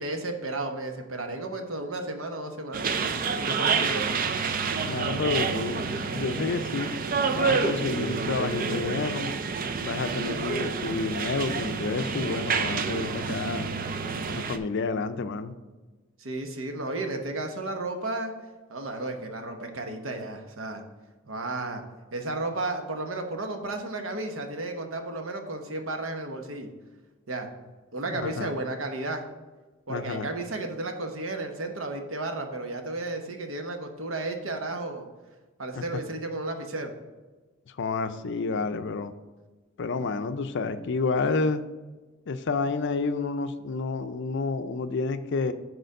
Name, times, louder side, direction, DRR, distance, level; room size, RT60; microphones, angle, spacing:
voice 1, 0.0-2.9 3.4-4.1 16.2-18.3 18.7-20.8 21.3-21.8 22.1-26.7 27.3-27.5 27.9-29.2 29.9-35.1 35.6-36.9, right 2 dB, 70° right, 4 dB, 1.1 m, -33 dB
sound 1, 2.7-14.6, right 5 dB, 45° right, 0.5 m, -28 dB
voice 2, 4.8-6.9 7.3-9.3 9.8-13.7 14.3-15.5 28.1-28.5 29.9-30.3 35.8-35.9 37.8-39.1 39.8-41.6 42.3-45.5, left 4 dB, 60° left, 11 dB, 0.5 m, -29 dB
6.7 x 4.3 x 6.5 m, 1.2 s
head